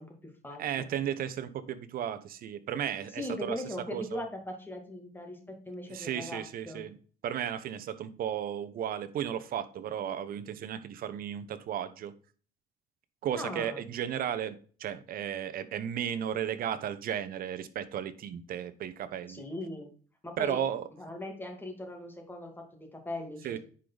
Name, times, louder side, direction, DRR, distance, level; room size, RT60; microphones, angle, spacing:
voice 1, 0.0-0.8 3.2-6.8 13.4-13.8 19.3-19.9 20.2-20.6 21.0-23.6, left 1 dB, 10° left, 3 dB, 2.2 m, -40 dB
voice 2, 0.6-3.6 3.9-4.2 5.9-7.0 7.2-12.1 13.2-19.4 20.4-20.9 23.4-23.6, right 9 dB, 60° right, 12 dB, 0.9 m, -34 dB
10.0 x 5.1 x 4.0 m, 0.42 s
cardioid pair, 110°, 17 cm